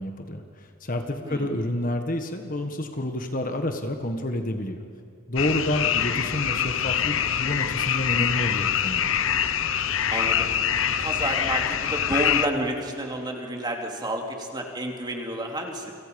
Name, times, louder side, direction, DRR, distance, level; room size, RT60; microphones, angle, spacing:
voice 1, 0.0-4.8 5.3-9.1, left 1 dB, 40° left, 5 dB, 1.6 m, -29 dB
voice 2, 1.2-1.6 10.1-10.5 11.0-15.9, right 1 dB, 20° right, 2 dB, 2.8 m, -30 dB
sound 1, 5.4-12.5, left 9 dB, 65° left, 0.8 m, -25 dB
29.5 x 26.5 x 5.3 m, 2.6 s
head